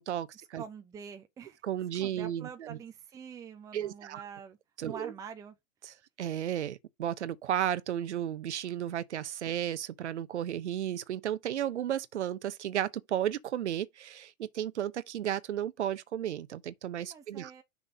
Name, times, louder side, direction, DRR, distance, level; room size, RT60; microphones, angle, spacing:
voice 1, 0.0-0.6 1.6-2.8 3.7-4.2 4.8-5.1 6.2-17.5, right 11 dB, 55° right, 0.8 m, -33 dB
voice 2, 0.6-1.6 2.0-4.6 4.8-5.6 17.0-17.6, right 7 dB, 10° right, 0.6 m, -46 dB
6.6 x 3.5 x 5.3 m
figure-of-eight pair, 105°, 41 cm